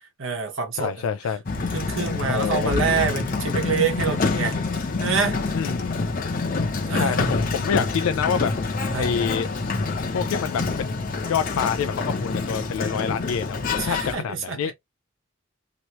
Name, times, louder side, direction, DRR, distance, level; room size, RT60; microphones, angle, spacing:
voice 1, 0.2-0.9 1.7-4.6 5.0-5.4 6.9-7.4 8.9-9.1 13.8-14.7, right 5 dB, 70° right, 1.1 m, -26 dB
voice 2, 0.7-1.4 2.2-2.7 5.5-6.1 6.9-8.5 8.9-9.5 10.1-11.0 11.3-14.7, left 7 dB, 85° left, 0.3 m, -27 dB
Sliding door, 1.5-14.1, left 3 dB, 40° left, 0.7 m, -26 dB
2.9 x 2.8 x 3.0 m
head